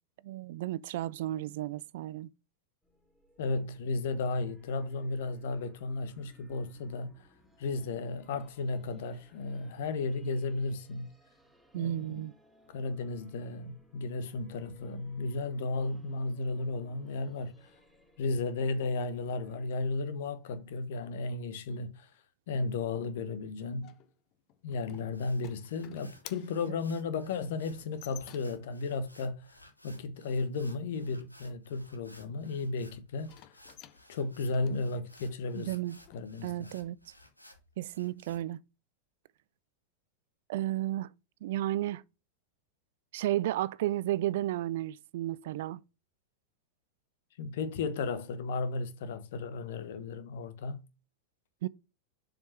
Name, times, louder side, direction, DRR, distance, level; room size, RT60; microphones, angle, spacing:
voice 1, 0.2-2.3 11.7-12.3 35.5-36.0 36.4-37.0 37.8-38.6 40.5-41.1 41.4-42.0 43.1-45.8 51.6-51.7, right 14 dB, 55° right, 0.4 m, -33 dB
sound 1, 2.8-19.7, equal, 5° left, 2.6 m, -63 dB
voice 2, 3.4-7.3 7.6-11.1 11.7-12.3 12.7-17.7 18.2-22.1 22.5-23.9 24.6-29.5 29.8-33.6 34.1-35.7 36.1-36.7 47.4-50.8, left 3 dB, 55° left, 1.1 m, -34 dB
sound 2, 23.8-28.8 33.2-36.2, left 12 dB, 40° left, 0.8 m, -54 dB
sound 3, 24.9-38.4, left 1 dB, 90° left, 1.3 m, -58 dB
7.2 x 5.3 x 4.5 m
figure-of-eight pair, 90°, 0 cm